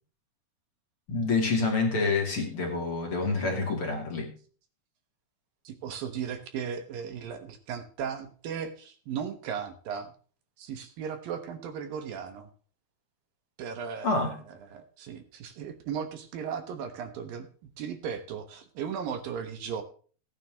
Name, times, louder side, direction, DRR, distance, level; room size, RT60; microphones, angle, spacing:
voice 1, 1.1-4.3 14.0-14.3, left 3 dB, 35° left, 1 dB, 3.1 m, -27 dB
voice 2, 5.6-10.1 10.6-12.5 13.6-14.4 14.7-17.5 17.8-19.8, right 7 dB, 70° right, 8 dB, 2.8 m, -36 dB
17.5 x 9.7 x 2.9 m, 0.41 s
omnidirectional pair, 4.6 m